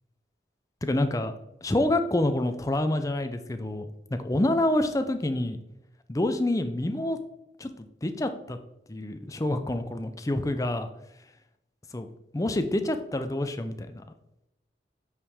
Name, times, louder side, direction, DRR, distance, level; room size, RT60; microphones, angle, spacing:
voice 1, 0.8-1.3 1.6-5.6 6.1-7.2 7.6-8.6 8.9-10.9 11.9-12.1 12.3-14.0, left 1 dB, 20° left, 8 dB, 0.5 m, -27 dB
8.1 x 4.9 x 3.5 m, 0.86 s
head